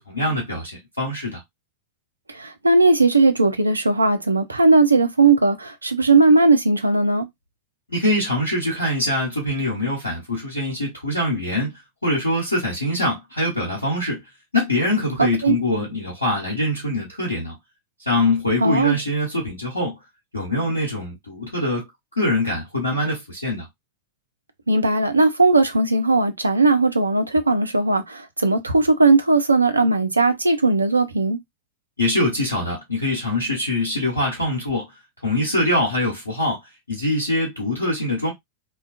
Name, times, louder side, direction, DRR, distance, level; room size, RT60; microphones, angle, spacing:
voice 1, 0.1-1.4 7.9-14.2 14.5-17.5 18.0-20.0 20.3-21.9 22.2-23.7 32.0-34.9 35.2-36.6 36.9-38.3, left 1 dB, 80° left, 0.9 m, -23 dB
voice 2, 2.3-7.3 15.2-15.5 18.6-19.0 24.7-31.4, right 3 dB, 80° right, 0.4 m, -18 dB
2.4 x 2.2 x 2.4 m
figure-of-eight pair, 90°, 0 cm